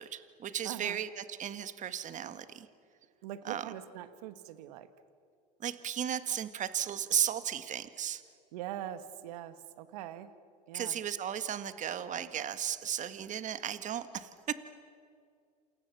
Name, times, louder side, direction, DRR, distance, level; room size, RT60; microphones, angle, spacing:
voice 1, 0.0-2.7 3.5-3.7 5.6-8.2 10.7-14.5, right 9 dB, 35° right, 11 dB, 1.8 m, -35 dB
voice 2, 0.6-1.0 3.2-4.9 8.5-10.3 10.7-11.0, right 12 dB, 75° right, 11 dB, 1.7 m, -42 dB
28.5 x 28.0 x 7.1 m, 2.3 s
hypercardioid pair, 90°, 20 cm